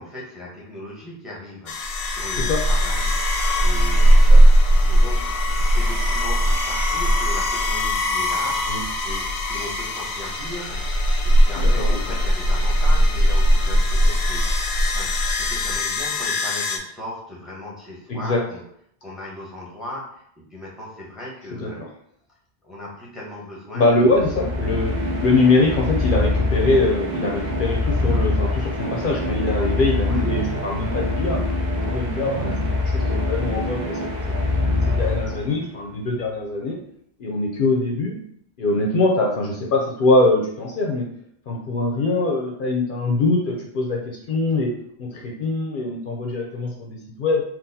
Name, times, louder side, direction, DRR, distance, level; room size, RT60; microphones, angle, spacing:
voice 1, 0.0-3.2 3.6-4.2 4.7-8.6 9.0-10.8 11.2-14.5 14.9-15.1 15.4-18.6 19.0-21.8 22.6-24.6 30.0-30.3, left 1 dB, ahead, -5 dB, 0.8 m, -37 dB
sound 1, 1.7-16.8, equal, 90° left, 0.8 m, -19 dB
voice 2, 11.6-12.0 18.1-18.4 21.5-21.7 23.7-24.9 25.2-31.4 31.9-32.5 32.9-34.1 34.9-36.8 37.2-38.2 38.6-41.1 41.5-44.7 45.0-47.4, left 2 dB, 60° left, -1 dB, 0.7 m, -22 dB
sound 2, 24.1-35.8, left 2 dB, 50° right, 0.7 m, -24 dB
3.9 x 2.3 x 2.6 m, 0.69 s
omnidirectional pair, 1.0 m